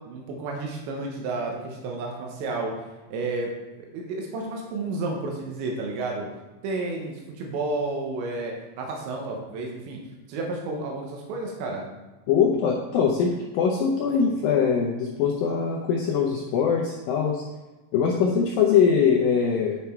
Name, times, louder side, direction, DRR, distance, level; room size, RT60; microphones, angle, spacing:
voice 1, 0.1-2.7 3.1-3.5 3.8-6.3 6.6-10.0 10.3-11.9 14.3-14.4, right 3 dB, 90° right, 0 dB, 3.5 m, -31 dB
voice 2, 12.3-17.4 17.9-19.8, left 6 dB, 80° left, 0 dB, 2.1 m, -22 dB
10.5 x 5.8 x 4.5 m, 1.2 s
omnidirectional pair, 5.1 m